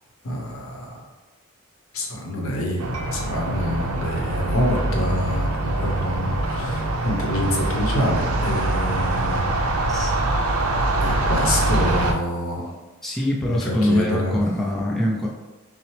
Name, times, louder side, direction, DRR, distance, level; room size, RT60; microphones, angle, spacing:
voice 1, 0.2-1.0 1.9-2.8 3.1-9.5 11.0-12.7 13.5-14.4, equal, 75° left, -1 dB, 0.8 m, -26 dB
sound 1, 2.8-12.1, right 2 dB, 85° right, 0.5 m, -23 dB
voice 2, 13.0-15.3, left 1 dB, ahead, -4 dB, 0.4 m, -23 dB
5.6 x 2.0 x 3.2 m, 1.2 s
head